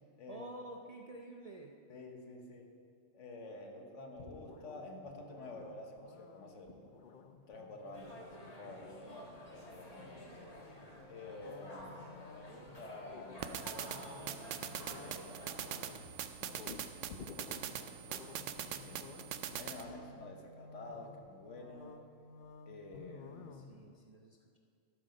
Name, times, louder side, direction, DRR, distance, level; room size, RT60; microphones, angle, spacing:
voice 1, 0.3-1.7 23.4-24.6, right 1 dB, 45° right, 1 dB, 0.5 m, -50 dB
voice 2, 1.9-2.7 3.1-6.8 7.5-10.5 11.1-14.2 14.8-15.7 17.8-18.4 18.7-22.0 22.7-23.5, left 2 dB, 70° left, 3 dB, 1.5 m, -50 dB
sound 1, 4.2-24.0, left 5 dB, 50° left, 0.6 m, -54 dB
sound 2, 7.9-15.8, equal, 30° left, 1.6 m, -51 dB
sound 3, 13.4-19.8, right 9 dB, 75° right, 0.9 m, -43 dB
12.5 x 7.6 x 5.2 m, 2.3 s
omnidirectional pair, 1.3 m